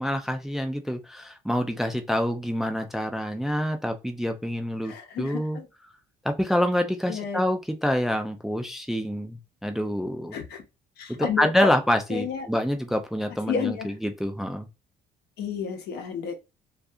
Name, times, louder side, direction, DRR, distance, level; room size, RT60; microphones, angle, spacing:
voice 1, 0.0-5.6 6.2-10.4 11.1-14.7, equal, ahead, 0.3 m, -27 dB
voice 2, 4.8-5.7 7.1-7.4 10.3-10.6 11.0-11.7 12.1-12.5 13.5-13.9 15.4-16.3, left 7 dB, 75° left, 0.8 m, -31 dB
2.4 x 2.3 x 2.6 m
cardioid pair, 110°, 17 cm